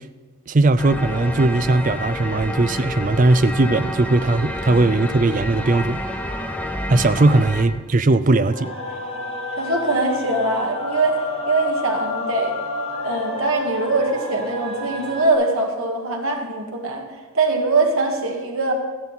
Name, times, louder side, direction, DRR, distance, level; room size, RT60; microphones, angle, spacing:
voice 1, 0.5-6.0 6.9-8.7, right 2 dB, 35° right, 12 dB, 0.4 m, -18 dB
sound 1, 0.8-7.6, left 1 dB, 5° left, 0.8 m, -29 dB
sound 2, 8.5-15.3, left 2 dB, 65° left, 2.3 m, -30 dB
voice 2, 9.6-12.6 13.0-17.0 17.3-18.7, right 2 dB, 75° right, 1 dB, 2.0 m, -22 dB
14.0 x 11.0 x 4.2 m, 1.5 s
head